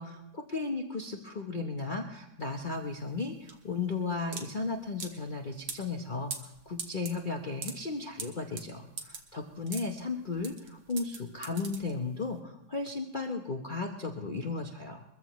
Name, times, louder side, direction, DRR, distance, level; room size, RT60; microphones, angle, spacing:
voice 1, 0.0-15.0, left 3 dB, 75° left, 2 dB, 0.4 m, -35 dB
sound 1, 2.4-12.3, right 5 dB, 55° right, 1.8 m, -43 dB
22.5 x 14.5 x 3.1 m, 0.89 s
omnidirectional pair, 2.3 m